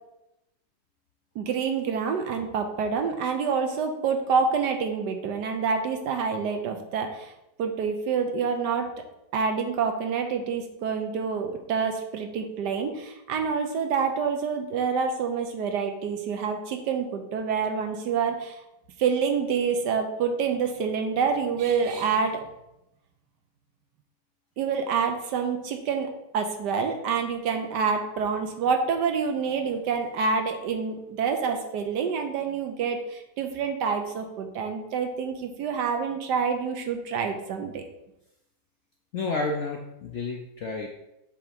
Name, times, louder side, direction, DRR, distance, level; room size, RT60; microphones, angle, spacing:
voice 1, 1.3-7.3 7.6-8.9 9.3-18.6 19.0-22.4 24.6-37.8, right 6 dB, 70° right, 5 dB, 1.3 m, -27 dB
voice 2, 39.1-40.9, left 3 dB, 75° left, 0 dB, 0.6 m, -30 dB
7.0 x 3.0 x 5.0 m, 0.87 s
omnidirectional pair, 2.0 m